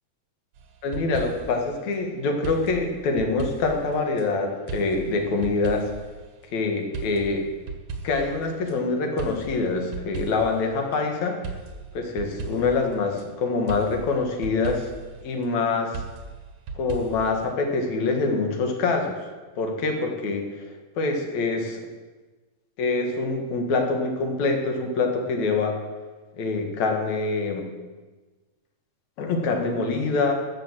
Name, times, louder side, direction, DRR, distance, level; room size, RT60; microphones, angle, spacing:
sound 1, 0.6-1.6 2.4-4.3 4.7-6.1 6.9-8.8 9.2-10.6 11.4-13.3 13.7-15.1 15.9-17.5, right 4 dB, 65° right, 2.3 m, -36 dB
voice 1, 0.8-5.9 6.5-7.4 8.0-11.4 11.9-14.9 15.2-16.0 16.7-19.2 19.6-20.6 21.0-21.8 22.8-25.8 26.3-27.7 29.2-30.3, left 3 dB, 70° left, 3 dB, 2.8 m, -25 dB
13.0 x 6.9 x 7.4 m, 1.3 s
omnidirectional pair, 3.3 m